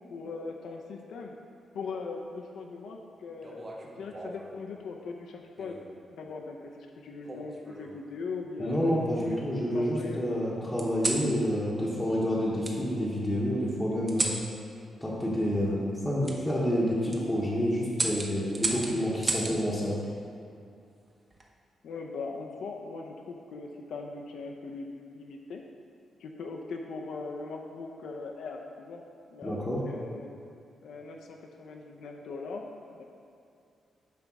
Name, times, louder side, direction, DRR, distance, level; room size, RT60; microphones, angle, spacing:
voice 1, 0.0-1.4 1.7-5.8 6.1-8.8 9.3-9.4 9.7-10.4 21.8-25.6 26.2-29.0 29.3-30.3 30.8-33.0, left 4 dB, 75° left, 1 dB, 0.6 m, -40 dB
sound 1, 3.4-4.5 5.6-6.0 7.3-8.0 8.6-9.5 10.8-11.3 12.6-12.8 14.1-14.4 16.2-16.4 16.9-17.2 17.9-19.6 21.1-21.5, right 2 dB, 25° right, 0.7 m, -34 dB
voice 2, 8.6-14.3 15.0-20.0 29.4-29.8, equal, 5° left, -7 dB, 0.9 m, -28 dB
9.2 x 3.5 x 6.0 m, 2.4 s
wide cardioid pair, 170°, 0 cm